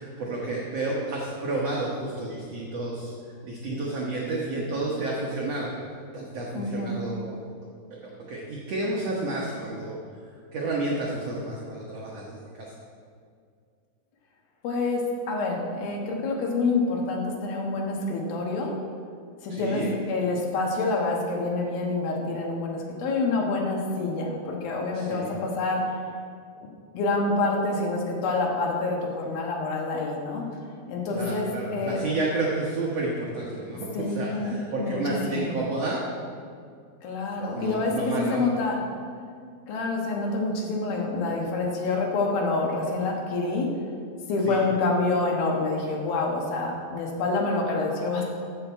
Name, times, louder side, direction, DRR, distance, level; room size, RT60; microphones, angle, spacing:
voice 1, 0.0-3.1 3.4-7.4 8.3-10.0 10.5-12.7 19.5-19.9 24.9-25.3 31.1-36.0 37.4-38.5 44.4-44.6, right 2 dB, 75° right, -4 dB, 1.5 m, -31 dB
voice 2, 6.5-6.9 14.6-18.7 19.4-25.8 26.9-30.4 30.9-32.0 33.9-34.5 34.8-35.5 37.0-38.8 39.7-43.7 44.3-48.2, left 3 dB, 70° left, 0 dB, 3.0 m, -27 dB
13.5 x 6.0 x 4.6 m, 2.2 s
omnidirectional pair, 4.5 m